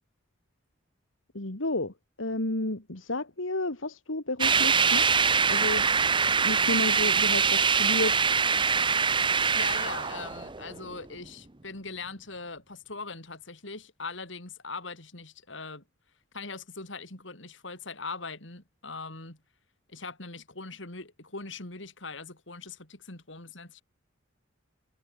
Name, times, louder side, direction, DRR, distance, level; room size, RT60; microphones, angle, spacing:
voice 1, 1.3-5.2 5.5-5.9 6.2-8.2, left 2 dB, 90° left, 2.6 m, -32 dB
sound 1, 4.4-11.0, right 5 dB, 25° right, 1.0 m, -24 dB
voice 2, 9.5-15.8 16.3-19.4 19.9-23.8, left 4 dB, 70° left, 4.6 m, -41 dB
head